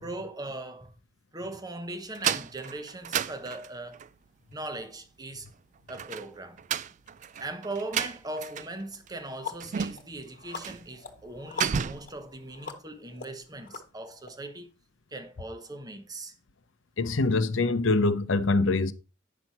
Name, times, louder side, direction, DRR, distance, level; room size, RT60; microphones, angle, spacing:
voice 1, 0.0-0.9 1.3-4.0 4.5-5.5 5.9-6.6 7.4-14.7 15.1-16.3, right 2 dB, 20° right, 0.9 m, -39 dB
sound 1, 2.1-4.1 5.9-8.8 9.1-9.2 9.6-10.2 10.6-10.9 11.2-12.2, right 8 dB, 40° right, 0.3 m, -32 dB
sound 2, 8.4-8.5 8.9-14.3, left 6 dB, 45° left, 1.3 m, -43 dB
voice 2, 17.0-18.9, left 3 dB, 70° left, 0.7 m, -24 dB
9.2 x 6.1 x 4.2 m
head